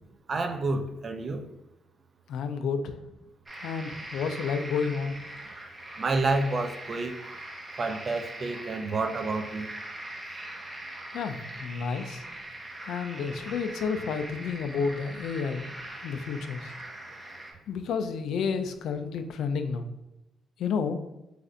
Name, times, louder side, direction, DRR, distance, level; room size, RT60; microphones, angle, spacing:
voice 1, 0.3-1.4 6.0-7.1 7.8-9.7, right 3 dB, 40° right, 7 dB, 0.4 m, -29 dB
voice 2, 2.3-2.9 3.6-5.2 11.1-12.2 12.9-15.7 16.0-16.7 17.7-19.9 20.6-21.0, left 5 dB, 75° left, 8 dB, 0.4 m, -30 dB
sound 1, 3.5-17.5, right 1 dB, 25° right, 0.9 m, -42 dB
3.2 x 2.5 x 3.7 m, 0.91 s
cardioid pair, 90°, 0 cm